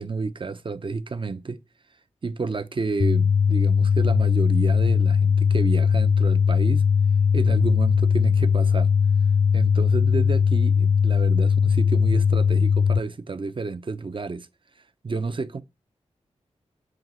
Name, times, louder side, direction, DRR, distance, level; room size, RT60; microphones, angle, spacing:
voice 1, 0.0-1.6 2.2-6.8 7.3-8.9 9.5-14.5 15.0-15.6, right 4 dB, 45° right, 0.7 m, -30 dB
sound 1, 3.0-13.0, left 6 dB, 35° left, 0.4 m, -19 dB
7.8 x 3.0 x 5.4 m
cardioid pair, 60°, 12 cm